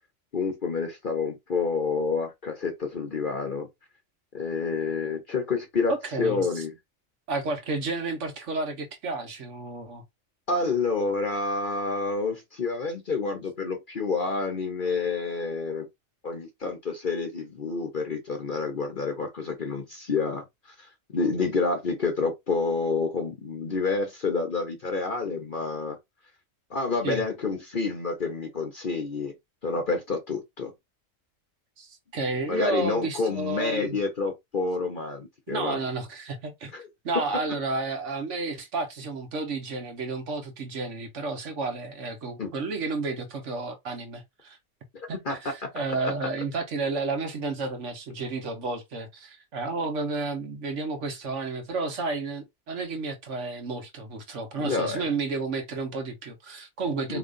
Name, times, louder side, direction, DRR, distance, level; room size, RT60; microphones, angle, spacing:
voice 1, 0.3-3.7 4.3-6.7 10.5-15.9 16.2-20.4 21.1-26.0 26.7-29.3 29.6-30.7 32.5-35.8 36.7-36.8 42.4-42.5 44.9-45.7 46.0-46.1 54.6-55.0 57.1-57.2, left 4 dB, 45° left, 1.0 m, -28 dB
voice 2, 5.9-6.6 7.3-10.0 27.0-27.2 31.8-34.0 35.5-36.7 37.0-44.6 45.1-57.2, right 3 dB, 65° right, 1.5 m, -31 dB
4.9 x 3.3 x 2.6 m
omnidirectional pair, 1.4 m